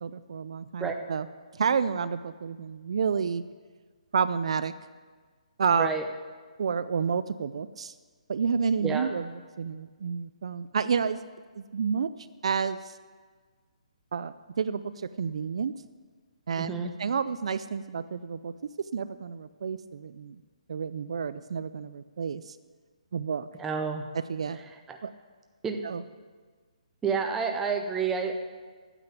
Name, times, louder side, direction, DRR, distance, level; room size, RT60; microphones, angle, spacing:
voice 1, 0.0-1.3 1.6-3.4 4.1-4.7 5.6-5.9 6.6-7.9 8.3-9.3 9.6-11.2 11.6-12.1 12.4-12.9 14.1-15.7 16.5-20.4 20.7-22.6 23.1-23.5 24.3-24.6 25.0-25.1 25.8-26.0, right 6 dB, 50° right, 14 dB, 0.4 m, -30 dB
voice 2, 16.6-16.9 23.6-24.1 24.9-25.0 25.6-25.8 27.0-28.3, right 5 dB, 5° right, 4 dB, 0.6 m, -29 dB
9.0 x 7.8 x 9.0 m, 1.5 s
hypercardioid pair, 170°, 4 cm